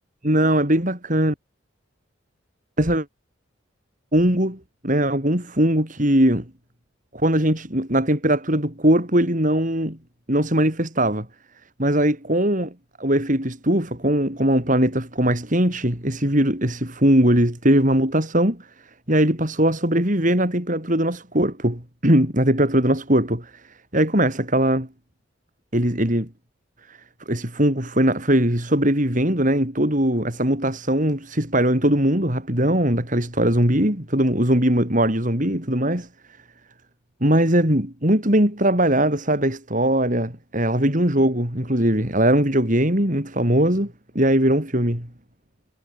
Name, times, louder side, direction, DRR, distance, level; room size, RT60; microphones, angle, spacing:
voice 1, 0.2-1.3 2.8-3.1 4.1-6.5 7.1-10.0 10.3-11.3 11.8-12.7 13.0-18.7 19.1-23.5 23.9-24.9 25.7-26.3 26.9-27.0 27.3-36.1 37.2-45.1, right 1 dB, 40° right, 5.7 m, -20 dB
head